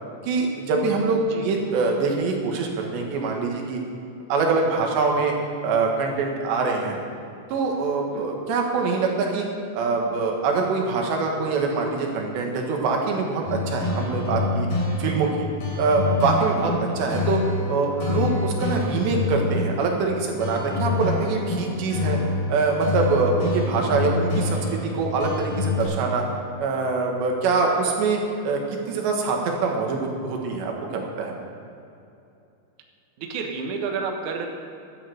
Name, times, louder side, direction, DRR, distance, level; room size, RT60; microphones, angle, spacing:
voice 1, 0.2-3.8 4.3-5.3 5.6-7.0 7.5-9.5 9.7-14.7 15.0-15.5 15.8-17.4 17.7-22.2 22.5-26.2 26.6-31.3, right 4 dB, 80° right, 1 dB, 3.8 m, -24 dB
sound 1, 13.5-25.9, left 3 dB, 70° left, 5.3 m, -27 dB
voice 2, 16.6-17.0 33.2-34.5, right 5 dB, 65° right, 3 dB, 2.1 m, -31 dB
12.5 x 8.6 x 7.9 m, 2.7 s
omnidirectional pair, 5.0 m